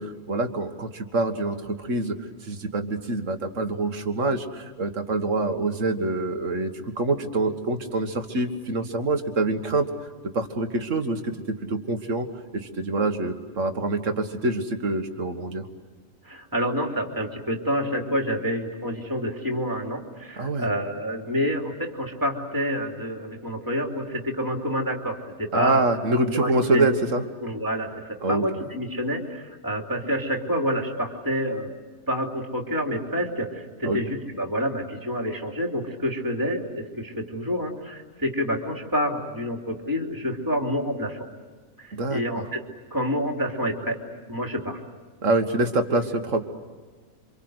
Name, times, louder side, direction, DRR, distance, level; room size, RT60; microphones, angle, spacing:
voice 1, 0.0-2.2 2.4-9.9 10.3-12.3 12.5-15.7 20.4-20.7 25.5-27.2 28.2-28.4 33.8-34.0 41.9-42.4 45.2-46.5, right 2 dB, 60° right, 6 dB, 2.1 m, -25 dB
voice 2, 16.2-25.9 26.3-26.9 27.4-31.7 32.1-41.3 41.8-42.6 42.9-44.0 44.3-44.8, equal, 15° right, 1 dB, 3.0 m, -28 dB
28.5 x 25.5 x 8.0 m, 1.4 s
omnidirectional pair, 1.5 m